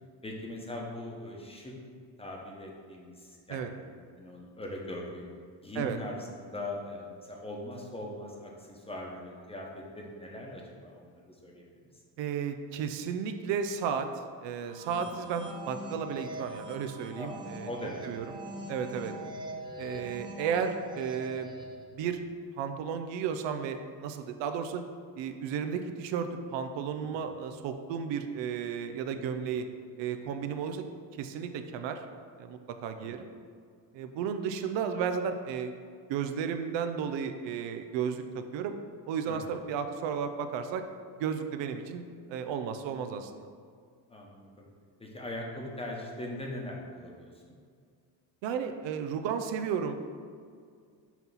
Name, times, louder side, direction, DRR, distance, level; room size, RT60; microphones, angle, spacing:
voice 1, 0.2-1.7 2.2-5.3 5.6-11.7 14.9-15.0 17.1-18.1 26.9-27.3 33.0-33.2 39.3-39.4 44.1-44.7 45.0-47.5, left 1 dB, 15° left, -1 dB, 0.9 m, -41 dB
voice 2, 12.2-14.1 14.4-17.7 18.0-18.2 18.7-19.1 19.8-21.5 21.9-22.2 22.6-24.8 25.1-29.7 30.0-30.8 31.2-32.0 32.4-33.3 33.9-35.7 36.1-38.8 39.1-40.8 41.2-42.0 42.3-43.5 48.4-50.0, right 7 dB, 75° right, 7 dB, 0.6 m, -33 dB
sound 1, 14.6-21.9, right 1 dB, 10° right, 0.6 m, -43 dB
5.9 x 2.9 x 5.5 m, 2.1 s
cardioid pair, 105°, 45 cm